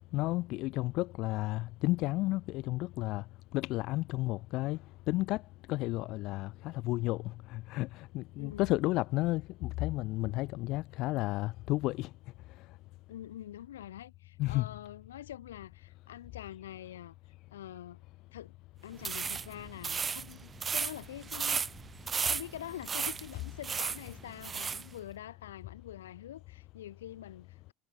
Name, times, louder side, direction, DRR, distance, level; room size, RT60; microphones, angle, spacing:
voice 1, 0.1-3.2 3.5-4.8 5.1-5.4 5.7-12.1 14.4-14.7, left 19 dB, 60° left, 1.3 m, -32 dB
voice 2, 8.4-8.8 13.1-17.2 17.5-18.0 18.3-18.5 18.8-21.6 22.2-27.7, left 12 dB, 80° left, 3.7 m, -45 dB
sound 1, 19.0-24.9, right 6 dB, 30° right, 0.8 m, -35 dB
figure-of-eight pair, 65°, 0 cm